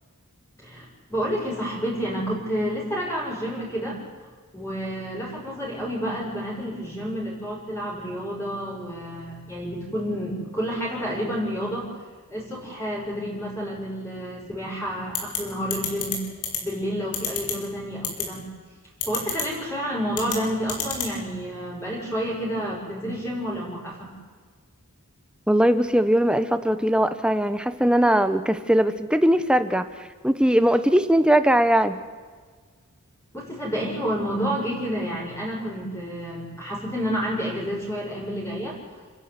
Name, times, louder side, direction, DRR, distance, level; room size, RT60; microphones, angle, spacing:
voice 1, 0.6-4.0 4.5-11.9 12.3-16.2 16.6-18.4 19.0-24.1 33.3-38.8, equal, 10° left, -4 dB, 6.5 m, -29 dB
sound 1, 15.1-15.4 15.7-16.2 16.4-16.6 17.1-17.5 18.0-18.2 19.0-19.4 20.1-20.4 20.7-21.1, left 8 dB, 90° left, 4.7 m, -26 dB
voice 2, 25.5-29.9 30.2-31.9, right 1 dB, 5° right, 10 dB, 1.1 m, -20 dB
29.5 x 11.5 x 9.7 m, 1.5 s
head